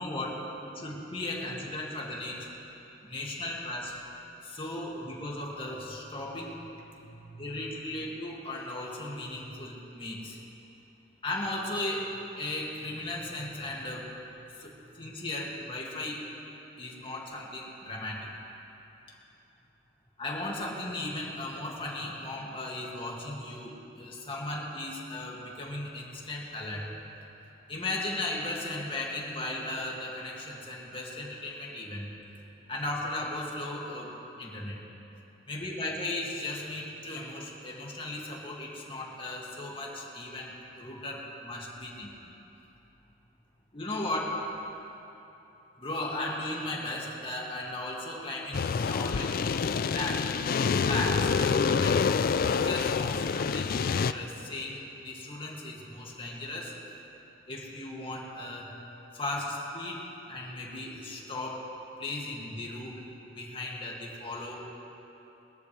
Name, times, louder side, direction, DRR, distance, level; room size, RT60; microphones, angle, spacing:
voice 1, 0.0-2.5 3.0-4.0 4.4-10.4 11.2-14.2 14.5-16.2 16.8-18.3 20.2-26.9 27.7-32.1 32.7-34.8 35.5-42.3 43.7-44.4 45.8-49.4 49.9-50.3 50.8-52.1 52.5-56.7 57.5-58.8 59.1-61.7 62.0-62.9 63.3-64.6, left 2 dB, 30° left, -3 dB, 2.1 m, -36 dB
sound 1, 48.5-54.1, left 5 dB, 50° left, 0.4 m, -27 dB
21.5 x 14.0 x 3.2 m, 3.0 s
head